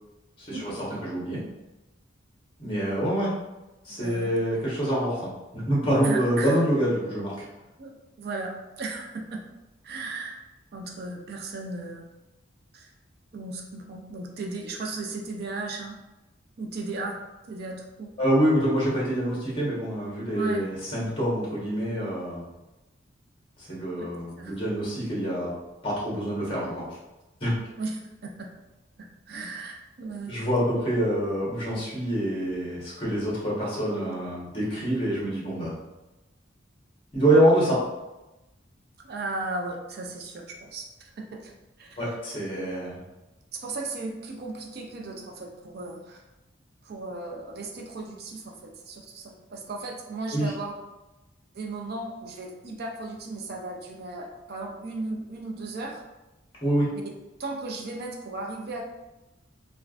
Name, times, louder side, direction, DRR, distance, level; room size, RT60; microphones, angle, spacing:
voice 1, 0.4-0.7 1.0-1.4 2.6-3.3 3.8-7.4 18.2-22.4 23.6-25.5 25.8-26.8 27.4-27.5 30.3-35.8 37.1-37.8 42.0-43.0 50.3-50.5 56.6-56.9, right 1 dB, 30° left, -6 dB, 1.1 m, -26 dB
voice 2, 3.9-4.3 6.0-6.6 7.8-9.4 9.8-10.4 10.7-12.1 12.7-12.9 13.3-16.0 16.6-17.2 17.5-18.1 20.3-20.7 24.0-24.6 27.8-28.5 29.0-30.4 39.0-41.5 41.8-42.2 43.5-46.2 46.8-50.8 51.5-56.0 56.9-57.0 57.4-58.8, right 3 dB, 55° right, 2 dB, 0.4 m, -36 dB
3.2 x 2.4 x 2.4 m, 1.0 s
head